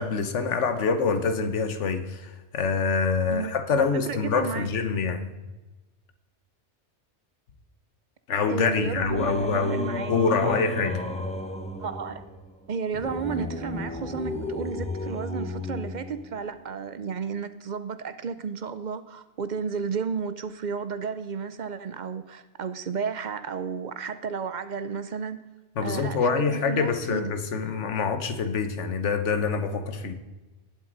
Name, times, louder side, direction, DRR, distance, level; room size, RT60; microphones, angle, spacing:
voice 1, 0.0-5.4 8.3-11.0 25.8-30.1, left 5 dB, 85° left, 1.3 m, -26 dB
voice 2, 3.8-4.7 8.5-10.1 10.4-10.6 11.8-12.3 12.7-25.4 25.8-27.3, right 6 dB, 50° right, 0.6 m, -33 dB
Singing, 9.1-16.5, left 2 dB, 5° left, 0.8 m, -33 dB
19.0 x 7.6 x 3.9 m
omnidirectional pair, 1.2 m